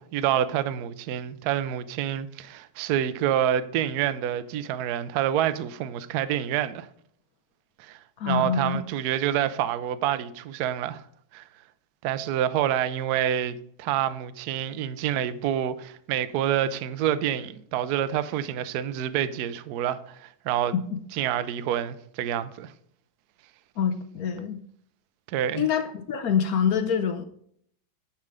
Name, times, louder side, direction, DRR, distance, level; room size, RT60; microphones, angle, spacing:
voice 1, 0.0-6.9 7.8-8.0 8.3-11.0 11.3-11.4 12.0-20.7 21.1-22.7 25.3-25.7, right 10 dB, 75° right, 0.9 m, -27 dB
voice 2, 8.2-8.8 20.7-21.0 23.8-24.6 25.5-27.3, left 7 dB, 65° left, 0.9 m, -26 dB
9.7 x 4.4 x 5.0 m
omnidirectional pair, 2.3 m